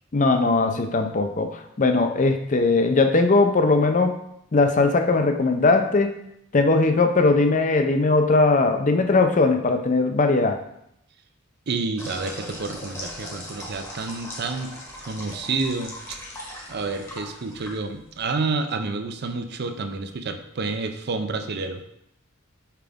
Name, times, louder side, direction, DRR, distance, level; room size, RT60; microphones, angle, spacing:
voice 1, 0.1-4.2 4.5-6.1 6.5-10.6, left 3 dB, 35° left, 7 dB, 0.5 m, -19 dB
voice 2, 11.7-14.7 15.1-16.2 16.7-21.8, right 3 dB, 50° right, 8 dB, 0.5 m, -29 dB
sound 1, 12.0-18.2, left 1 dB, 15° left, 1.0 m, -39 dB
5.8 x 4.8 x 3.5 m, 0.77 s
head